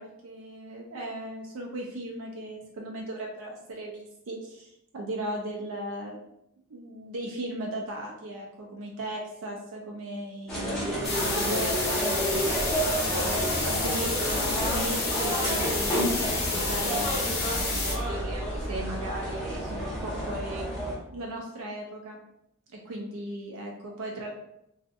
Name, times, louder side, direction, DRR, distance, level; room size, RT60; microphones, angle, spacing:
voice 1, 0.0-6.2 6.7-12.4 12.9-20.7 21.1-22.2 22.7-24.3, right 1 dB, 65° right, 0 dB, 0.5 m, -37 dB
sound 1, 10.5-21.0, equal, ahead, 0.8 m, -30 dB
sound 2, 11.0-17.9, left 3 dB, 45° left, 0.7 m, -30 dB
sound 3, 15.1-15.2 15.4-18.2, left 1 dB, 20° left, 1.0 m, -33 dB
2.6 x 2.4 x 2.4 m, 0.81 s
head